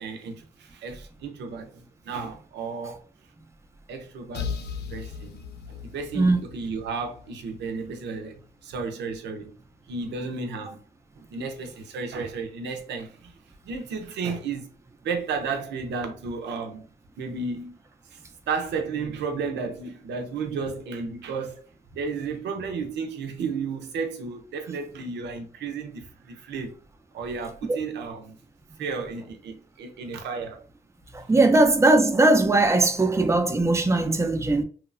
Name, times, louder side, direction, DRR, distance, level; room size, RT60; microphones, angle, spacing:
voice 1, 0.0-3.0 3.9-4.5 4.9-5.4 5.7-9.5 9.9-10.8 11.2-13.3 13.7-14.7 15.0-16.9 17.2-17.8 18.1-18.2 18.5-21.6 21.9-26.8 27.1-28.4 28.8-30.6, right 4 dB, 85° right, 0.6 m, -33 dB
sound 1, 4.3-8.0, left 6 dB, 75° left, 0.4 m, -37 dB
voice 2, 31.1-34.6, right 2 dB, 15° right, 0.5 m, -19 dB
2.9 x 2.0 x 2.5 m
cardioid pair, 60°, 18 cm